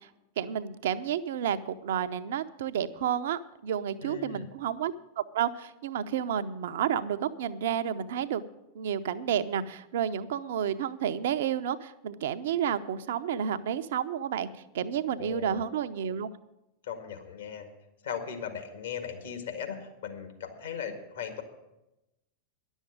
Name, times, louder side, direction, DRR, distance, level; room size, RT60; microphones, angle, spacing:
voice 1, 0.4-8.4 8.7-14.5 14.7-16.3, right 9 dB, 60° right, 11 dB, 0.6 m, -31 dB
voice 2, 4.0-4.5 15.2-15.6 16.8-17.7 18.0-21.4, left 7 dB, 60° left, 5 dB, 1.7 m, -38 dB
11.0 x 7.2 x 8.9 m, 0.93 s
figure-of-eight pair, 90°, 0 cm